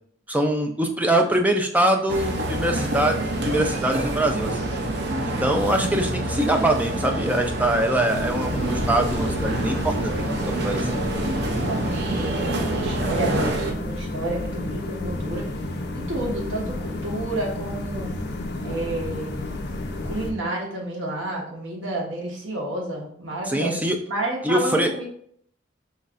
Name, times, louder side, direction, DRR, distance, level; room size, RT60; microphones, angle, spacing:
voice 1, 0.3-4.5 5.2-10.1 10.4-10.8 23.5-24.0 24.4-24.9, right 1 dB, 10° right, 4 dB, 0.4 m, -23 dB
sound 1, 2.1-13.7, right 1 dB, 55° right, 0.6 m, -27 dB
voice 2, 5.7-6.0 11.5-15.5 15.9-18.1 18.6-19.4 20.0-25.0, right 1 dB, 75° right, -2 dB, 1.3 m, -30 dB
sound 2, 8.1-20.3, left 1 dB, 55° left, 0.6 m, -31 dB
5.4 x 3.2 x 2.4 m, 0.63 s
head